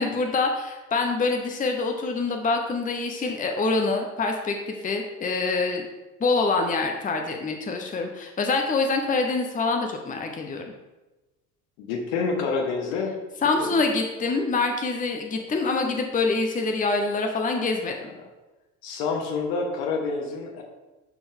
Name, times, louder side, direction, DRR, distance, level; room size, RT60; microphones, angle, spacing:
voice 1, 0.0-5.8 6.2-10.6 13.4-18.1, left 3 dB, 20° left, 4 dB, 0.9 m, -25 dB
voice 2, 11.8-13.1 13.6-13.8 18.8-20.6, left 4 dB, 60° left, 2 dB, 1.6 m, -28 dB
11.5 x 4.5 x 3.6 m, 1.1 s
figure-of-eight pair, 65°, 43 cm